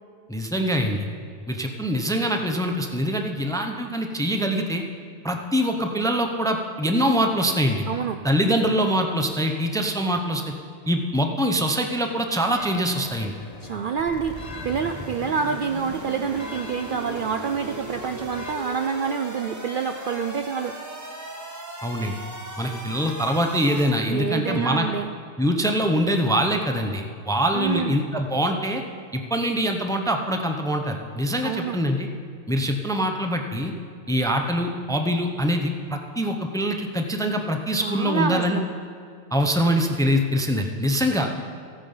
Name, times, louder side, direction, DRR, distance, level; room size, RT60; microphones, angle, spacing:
voice 1, 0.3-1.1 1.5-4.8 5.2-7.8 8.2-10.4 10.9-13.3 21.8-22.1 22.6-24.9 25.4-28.8 29.1-32.1 32.5-33.7 34.1-38.6 39.3-41.4, equal, 5° left, 4 dB, 0.6 m, -24 dB
voice 2, 7.9-8.2 13.6-20.8 24.1-25.1 27.5-28.0 31.4-31.8 37.8-38.7, right 6 dB, 60° right, 7 dB, 0.6 m, -27 dB
sound 1, 12.5-18.5, left 3 dB, 35° left, 0.8 m, -42 dB
sound 2, 14.0-23.9, right 1 dB, 15° right, 1.0 m, -38 dB
14.5 x 8.8 x 5.5 m, 2.3 s
omnidirectional pair, 1.2 m